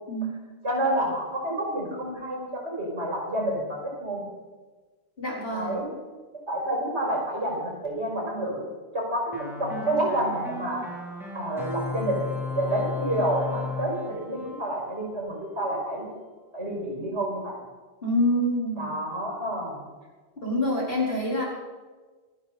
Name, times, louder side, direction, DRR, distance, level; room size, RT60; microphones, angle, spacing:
voice 1, 0.6-4.2 5.5-5.9 6.5-8.6 8.9-10.8 11.3-12.3 12.5-16.1 16.5-17.5 18.8-19.9, right 1 dB, 85° right, -2 dB, 6.0 m, -29 dB
voice 2, 5.2-5.7 18.0-18.9 20.4-21.4, left 1 dB, 55° left, -4 dB, 4.6 m, -26 dB
sound 1, 9.3-15.4, left 3 dB, ahead, 3.3 m, -35 dB
27.0 x 9.9 x 4.2 m, 1.3 s
omnidirectional pair, 1.1 m